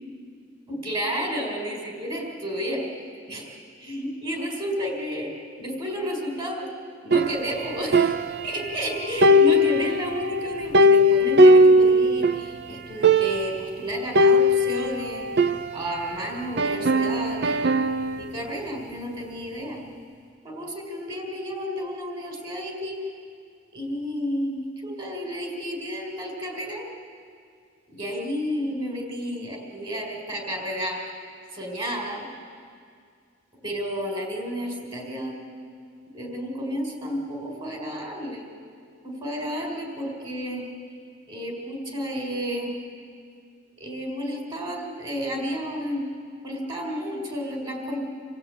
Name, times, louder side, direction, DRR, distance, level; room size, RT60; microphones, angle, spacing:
voice 1, 0.8-2.8 3.3-5.3 5.6-6.7 7.0-17.7 18.2-19.8 20.4-23.0 23.7-26.9 27.9-31.3 31.5-32.3 33.6-35.4 36.1-38.5 39.0-40.6 41.3-42.7 43.8-46.0 46.4-48.0, equal, 30° right, 1 dB, 4.6 m, -31 dB
sound 1, 7.1-8.9 9.2-12.5 12.8-12.9 13.0-13.6 14.1-16.1 16.6-18.2, equal, 60° right, 0.7 m, -19 dB
27.5 x 16.0 x 8.9 m, 2.2 s
head